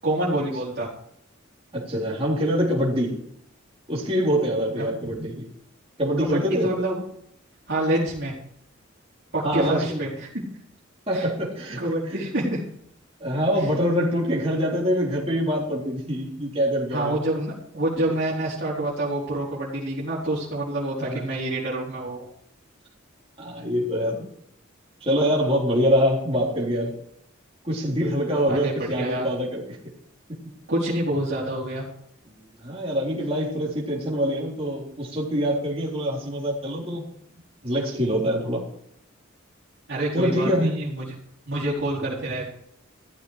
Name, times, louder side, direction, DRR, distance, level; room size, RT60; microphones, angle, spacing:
voice 1, 0.0-0.9 4.8-4.9 6.2-7.0 7.7-8.3 9.3-10.3 11.1-11.3 11.8-12.6 16.9-22.3 28.5-29.3 30.7-31.9 39.9-41.1 41.5-42.4, right 1 dB, 55° right, -7 dB, 4.2 m, -27 dB
voice 2, 1.7-3.2 3.9-5.4 6.0-6.7 9.4-10.0 11.1-11.8 13.2-17.2 21.0-21.3 23.4-24.2 25.0-26.9 27.6-29.6 30.3-30.4 32.3-37.1 37.6-38.6 40.1-40.7, equal, 30° right, -4 dB, 3.8 m, -24 dB
15.5 x 13.5 x 4.9 m, 0.72 s
head